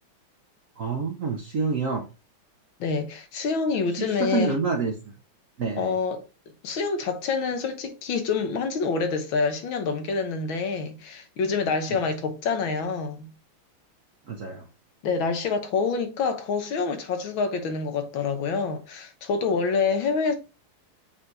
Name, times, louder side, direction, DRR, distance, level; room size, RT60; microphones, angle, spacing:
voice 1, 0.8-2.1 4.1-4.9 5.6-5.9 14.3-14.6, right 4 dB, 55° right, 0.9 m, -27 dB
voice 2, 2.8-4.6 5.8-6.3 6.6-13.3 15.0-20.4, left 4 dB, 70° left, 1.7 m, -27 dB
7.2 x 3.4 x 3.9 m
omnidirectional pair, 2.3 m